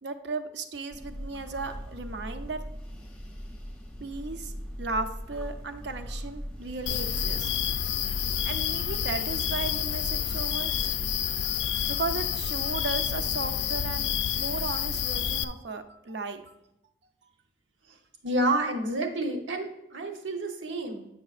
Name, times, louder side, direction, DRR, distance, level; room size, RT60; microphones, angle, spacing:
voice 1, 0.0-2.6 4.0-7.5 8.1-11.0 11.9-16.4, right 3 dB, 65° right, 8 dB, 0.6 m, -36 dB
sound 1, 0.9-8.6, equal, 5° left, 0.7 m, -40 dB
sound 2, 6.9-15.4, left 9 dB, 70° left, 0.4 m, -29 dB
voice 2, 18.2-21.1, right 1 dB, 85° right, 4 dB, 0.9 m, -29 dB
8.5 x 6.0 x 2.4 m, 0.85 s
head